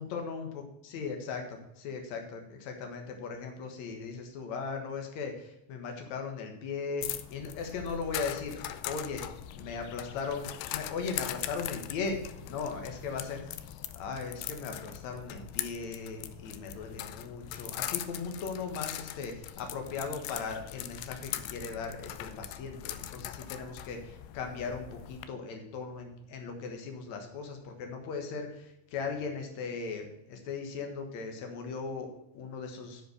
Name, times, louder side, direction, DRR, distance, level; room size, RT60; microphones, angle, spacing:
voice 1, 0.0-8.6 8.9-9.3 9.5-13.4 13.9-33.0, left 5 dB, 65° left, 4 dB, 1.8 m, -38 dB
sound 1, 7.0-25.2, left 12 dB, 85° left, 2.3 m, -41 dB
7.5 x 7.3 x 6.6 m, 0.85 s
omnidirectional pair, 5.4 m